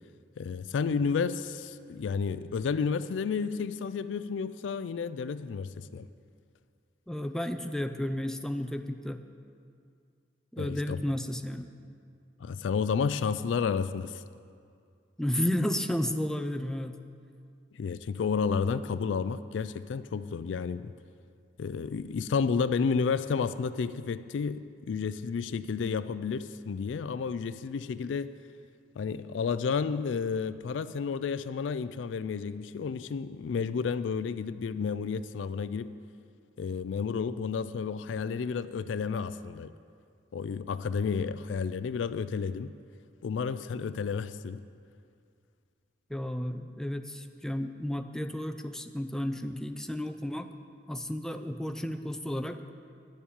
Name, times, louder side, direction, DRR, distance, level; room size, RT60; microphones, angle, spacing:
voice 1, 0.4-6.1 10.6-11.0 12.4-14.2 17.7-20.9 21.6-28.3 29.0-35.9 36.6-39.7 40.3-42.7 43.2-44.6, left 5 dB, 90° left, 0.4 m, -31 dB
voice 2, 7.1-9.2 10.5-11.7 15.2-17.0 46.1-50.6 50.9-52.6, left 1 dB, 5° left, 0.4 m, -32 dB
10.5 x 7.1 x 8.7 m
head